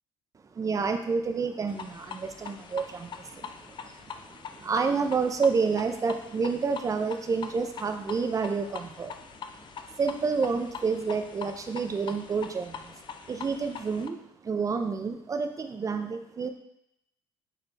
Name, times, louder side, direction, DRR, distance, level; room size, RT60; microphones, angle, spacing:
voice 1, 0.5-9.3 9.6-12.9 13.3-16.5, right 5 dB, 30° right, 6 dB, 0.5 m, -29 dB
sound 1, 1.7-14.1, left 6 dB, 40° left, 0.4 m, -43 dB
4.5 x 3.1 x 3.2 m, 0.78 s
supercardioid pair, 70°, 12 cm